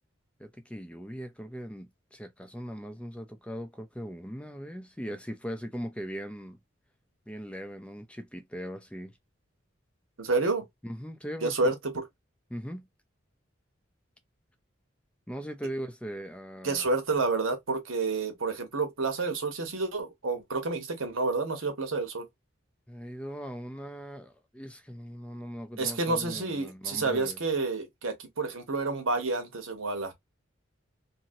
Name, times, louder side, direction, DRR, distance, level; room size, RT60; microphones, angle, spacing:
voice 1, 0.4-6.6 7.3-9.2 10.8-11.7 12.5-12.9 15.3-16.9 22.9-27.4, equal, 5° left, 0.4 m, -39 dB
voice 2, 10.2-10.6 11.4-12.0 16.6-22.3 25.8-30.1, right 3 dB, 90° right, 1.1 m, -29 dB
2.9 x 2.7 x 2.6 m
head